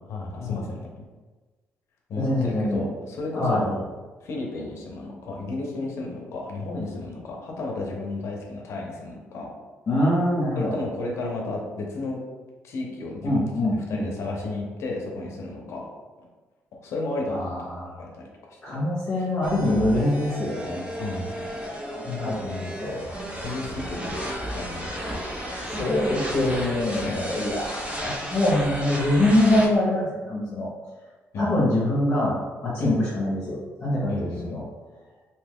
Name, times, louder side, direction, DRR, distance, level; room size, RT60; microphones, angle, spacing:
voice 1, 0.1-1.0 2.1-3.8 4.2-9.5 10.6-12.2 12.6-13.4 13.9-15.9 16.8-17.5 17.8-18.8 21.0-21.5 22.2-22.4 23.4-24.1 24.5-24.9 25.2-25.4 26.0-26.2 27.0-27.3 31.3-31.5 32.8-33.0 34.1-34.6, left 2 dB, 70° left, 0 dB, 0.7 m, -33 dB
voice 2, 2.2-2.8 3.3-3.7 9.9-10.7 13.2-14.1 17.3-18.0 18.6-20.8 21.9-23.1 25.7-30.7 31.4-34.1 34.5-34.6, left 1 dB, 40° left, -7 dB, 0.8 m, -24 dB
sound 1, 19.4-29.7, equal, 25° right, 0.6 m, -33 dB
2.8 x 2.2 x 3.5 m, 1.3 s
cardioid pair, 120°, 5 cm